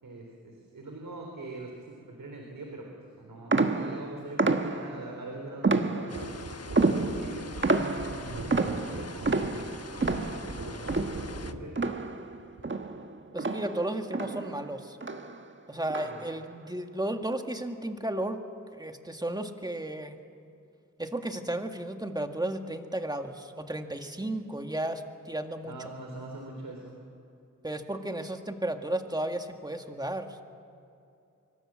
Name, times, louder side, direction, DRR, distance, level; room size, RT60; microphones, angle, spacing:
voice 1, 0.0-2.9 3.1-6.3 6.9-9.5 10.5-11.0 11.4-11.7 16.0-16.2 25.6-27.0, right 2 dB, 85° right, 1 dB, 3.7 m, -43 dB
sound 1, 3.5-5.1 5.6-6.4 6.8-12.4 12.6-14.7 15.0-15.4 15.9-16.4, right 3 dB, 35° right, 1.5 m, -29 dB
sound 2, 6.1-11.5, left 4 dB, 50° left, 1.3 m, -44 dB
sound 3, 6.1-11.7 12.6-12.7, right 3 dB, 65° right, 3.2 m, -41 dB
voice 2, 13.3-15.0 15.7-18.4 18.7-20.2 21.0-25.7 27.6-30.4, right 1 dB, 10° right, 5 dB, 1.9 m, -33 dB
26.0 x 24.0 x 7.5 m, 2.6 s
wide cardioid pair, 80°, 32 cm